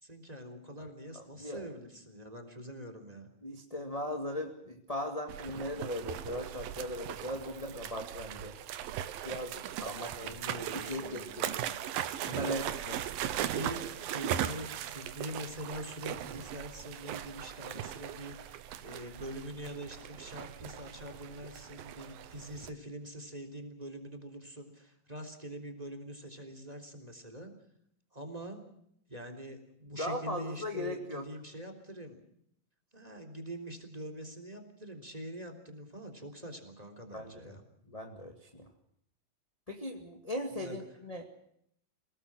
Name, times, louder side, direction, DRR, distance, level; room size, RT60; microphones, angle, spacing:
voice 1, 0.0-3.3 10.2-11.8 12.2-12.6 13.4-27.5 28.1-28.6 29.1-32.2 32.9-37.6 40.5-40.8, equal, 10° right, 7 dB, 3.2 m, -44 dB
voice 2, 1.1-1.7 3.4-8.5 9.2-10.3 10.9-11.5 12.4-13.0 29.9-31.3 37.1-37.5 37.9-38.7 39.7-41.2, left 1 dB, 15° left, 3 dB, 1.2 m, -38 dB
sound 1, 5.3-22.7, right 11 dB, 90° right, 2.9 m, -39 dB
29.0 x 18.5 x 6.2 m, 0.72 s
omnidirectional pair, 4.1 m